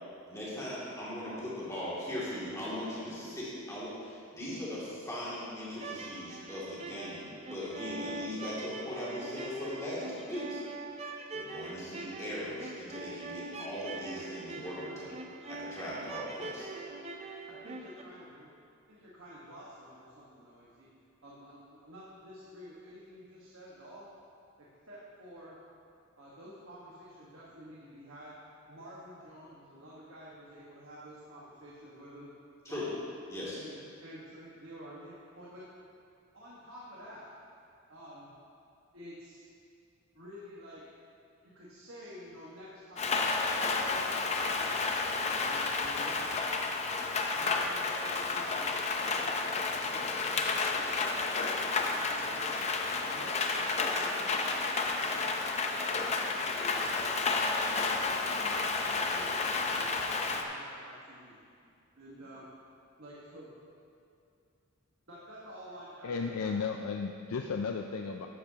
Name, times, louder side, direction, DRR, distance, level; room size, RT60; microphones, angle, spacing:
voice 1, 0.3-10.6 11.3-15.0 15.5-16.7 32.6-32.9 33.3-33.6, left 1 dB, 15° left, -8 dB, 2.4 m, -39 dB
sound 1, 5.7-18.0, right 3 dB, 30° right, 0.5 m, -43 dB
voice 2, 14.5-15.0 17.5-18.5 18.9-20.9 21.2-24.1 24.6-25.6 26.2-28.4 28.7-32.3 32.7-33.0 33.6-35.7 36.3-37.3 37.9-38.3 38.9-39.5 40.1-40.9 41.4-44.1 44.4-44.8 45.3-46.7 47.3-50.1 50.8-52.6 53.0-54.4 55.0-55.3 55.8-59.4 59.7-61.4 62.0-62.5 63.0-63.5 65.1-66.5, equal, 65° right, -7 dB, 1.4 m, -50 dB
Rain, 43.0-60.4, left 4 dB, 30° left, 0.6 m, -31 dB
voice 3, 66.0-68.3, left 5 dB, 85° left, 4 dB, 0.4 m, -34 dB
12.0 x 9.4 x 2.9 m, 2.4 s
head